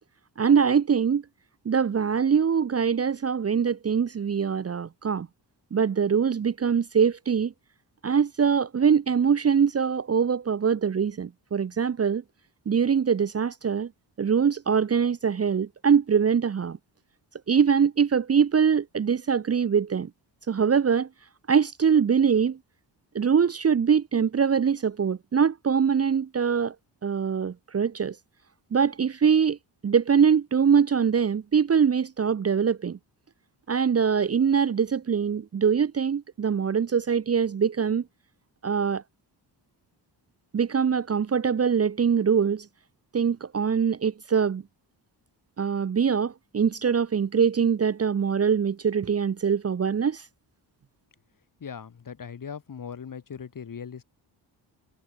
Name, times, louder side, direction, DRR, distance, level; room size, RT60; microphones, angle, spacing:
voice 1, 0.4-1.2 1.6-5.3 5.7-7.5 8.0-12.2 12.7-13.9 14.2-16.8 17.5-20.1 20.5-21.1 21.5-22.6 23.1-26.8 27.0-28.2 28.7-29.6 29.8-33.0 33.7-38.0 38.6-39.0 40.5-42.7 43.1-44.6 45.6-50.3, right 7 dB, 35° right, 0.8 m, -23 dB
voice 2, 51.6-54.0, left 7 dB, 50° left, 3.6 m, -39 dB
wide cardioid pair, 120°, 43 cm